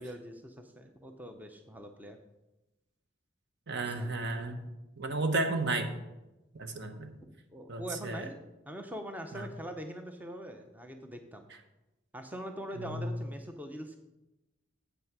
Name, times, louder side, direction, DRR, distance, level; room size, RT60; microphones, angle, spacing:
voice 1, 0.0-2.2 3.7-4.3 7.5-8.4 8.7-11.5 12.1-14.0, equal, 10° right, 5 dB, 0.6 m, -43 dB
voice 2, 3.7-4.7 5.0-5.9 6.5-7.1 7.7-8.2 9.3-9.5 12.8-13.1, right 2 dB, 60° right, 6 dB, 1.1 m, -33 dB
8.1 x 6.1 x 6.1 m, 0.99 s
head